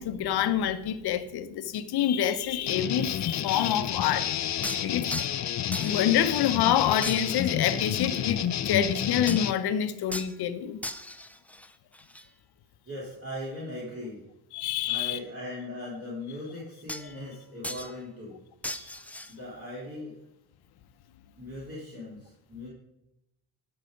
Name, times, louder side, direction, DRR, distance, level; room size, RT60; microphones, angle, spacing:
voice 1, 0.0-4.3 4.8-5.1 5.8-10.8 14.5-15.2, left 10 dB, 70° left, 0.9 m, -27 dB
sound 1, 2.7-9.5, left 10 dB, 45° left, 0.6 m, -30 dB
sword against sword, 4.6-5.5 5.7-6.7 7.0-7.6 9.3-9.6 10.1-10.4 10.8-12.3 16.9-17.4 17.6-18.0 18.6-19.3, left 1 dB, 5° left, 0.6 m, -38 dB
voice 2, 12.8-14.2 14.8-18.4 19.3-20.1 21.4-22.7, left 1 dB, 35° right, 3.6 m, -39 dB
12.5 x 5.7 x 5.2 m
cardioid pair, 85°, 40 cm